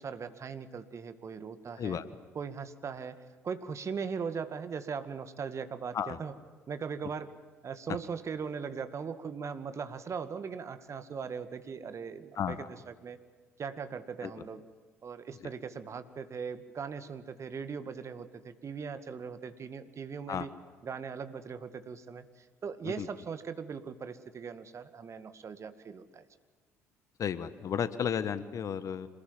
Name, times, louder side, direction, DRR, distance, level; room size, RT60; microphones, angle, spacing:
voice 1, 0.0-2.0 2.3-6.3 6.7-7.4 7.6-13.2 13.6-14.6 15.0-20.5 20.8-26.2, right 6 dB, 40° right, 11 dB, 2.1 m, -39 dB
voice 2, 12.4-12.7 14.2-14.3 20.3-20.5 22.8-23.1 27.2-29.1, left 8 dB, 45° left, 14 dB, 1.5 m, -33 dB
27.0 x 21.0 x 9.1 m, 1.4 s
figure-of-eight pair, 50°, 8 cm